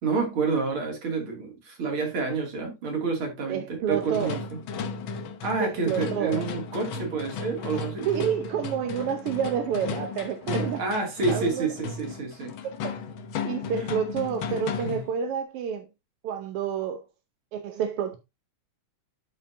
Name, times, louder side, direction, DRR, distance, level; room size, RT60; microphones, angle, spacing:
voice 1, 0.0-4.6 5.4-8.1 10.6-12.5 13.7-13.9 14.5-15.0, right 4 dB, 45° right, 3.2 m, -29 dB
voice 2, 3.5-4.4 5.6-6.5 8.1-10.8 11.3-11.7 12.6-12.9 13.4-15.9 16.2-17.0 17.5-18.2, right 8 dB, 70° right, 1.5 m, -29 dB
sound 1, 3.9-15.2, left 4 dB, 65° left, 1.3 m, -35 dB
12.0 x 4.9 x 2.7 m
omnidirectional pair, 3.3 m